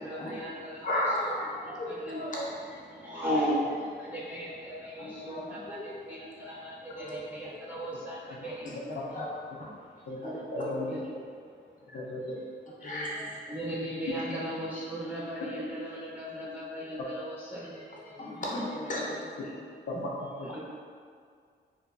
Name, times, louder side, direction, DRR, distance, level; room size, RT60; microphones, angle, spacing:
voice 1, 0.0-0.9 1.2-1.3 1.6-2.2 2.7-8.7 9.7-10.1 10.9-11.0 12.8-18.4 20.5-20.6, equal, 10° right, -9 dB, 0.5 m, -37 dB
voice 2, 0.8-2.6 4.1-4.2 5.0-5.9 7.0-7.5 8.4-9.3 9.6-9.7 10.2-10.7 11.9-12.0 12.8-13.4 18.2-19.6, left 1 dB, 40° left, -4 dB, 0.6 m, -35 dB
voice 3, 10.5-10.9 11.9-12.4 14.1-14.2 15.4-15.5 19.9-20.6, left 2 dB, 85° left, -3 dB, 0.4 m, -36 dB
2.8 x 2.3 x 2.3 m, 2.1 s
cardioid pair, 85°, 20 cm